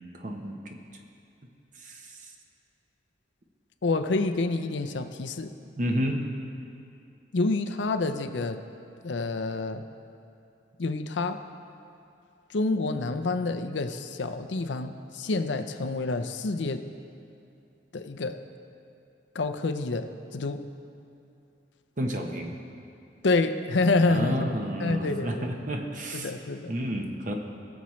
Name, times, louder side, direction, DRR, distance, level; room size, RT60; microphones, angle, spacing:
voice 1, 0.1-0.8 1.7-2.3 5.8-6.2 22.0-22.6 24.1-26.4 26.7-27.3, equal, 45° right, 3 dB, 0.9 m, -31 dB
voice 2, 3.8-5.5 7.3-8.6 9.0-9.8 10.8-11.4 12.5-16.8 17.9-18.4 19.3-20.1 20.3-20.7 23.2-24.5 24.8-25.5 26.1-26.7, left 3 dB, 80° left, 8 dB, 0.6 m, -28 dB
21.5 x 7.1 x 3.2 m, 2.6 s
head